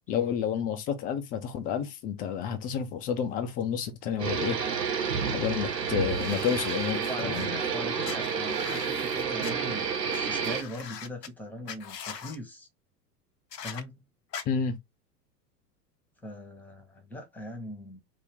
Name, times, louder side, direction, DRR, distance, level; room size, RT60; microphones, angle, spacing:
voice 1, 0.1-4.6 5.3-7.5 14.5-14.8, left 8 dB, 20° left, 0.4 m, -30 dB
sound 1, 4.2-10.6, right 6 dB, 85° right, 0.9 m, -30 dB
sound 2, 6.1-7.5 8.0-9.5 10.1-10.2 10.4-11.3 11.7-12.4 13.5-13.8 14.3-14.4, left 7 dB, 85° left, 0.6 m, -42 dB
voice 2, 7.1-12.7 13.6-14.0 16.2-18.0, left 1 dB, 5° left, 1.1 m, -40 dB
2.8 x 2.6 x 3.5 m
figure-of-eight pair, 90°, 48 cm